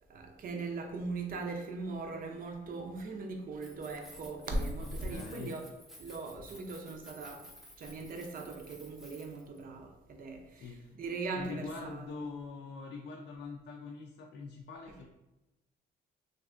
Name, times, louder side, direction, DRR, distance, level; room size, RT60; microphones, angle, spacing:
voice 1, 0.1-5.6 6.0-7.5 7.8-12.0, right 3 dB, 45° right, 0.5 m, -39 dB
Keys jangling, 3.6-9.6, equal, ahead, 0.7 m, -54 dB
voice 2, 5.1-5.6 10.5-11.0 11.3-15.1, left 4 dB, 70° left, 0.4 m, -44 dB
3.3 x 2.5 x 2.4 m
cardioid pair, 90°, 20 cm